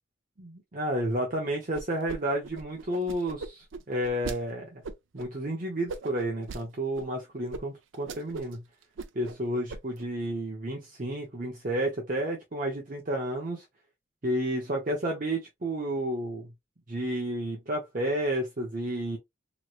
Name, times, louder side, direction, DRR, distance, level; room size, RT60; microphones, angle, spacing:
voice 1, 0.4-4.8 5.1-8.6 9.1-13.6 14.2-16.5 16.9-19.2, right 1 dB, 45° right, 0.7 m, -31 dB
sound 1, 1.7-2.2 2.4-4.4 4.8-5.3 5.9-6.6 6.9-7.1 7.5-7.6 7.9-8.5 8.8-9.4 9.7-10.0, right 4 dB, 85° right, 0.5 m, -39 dB
3.0 x 2.9 x 2.4 m
head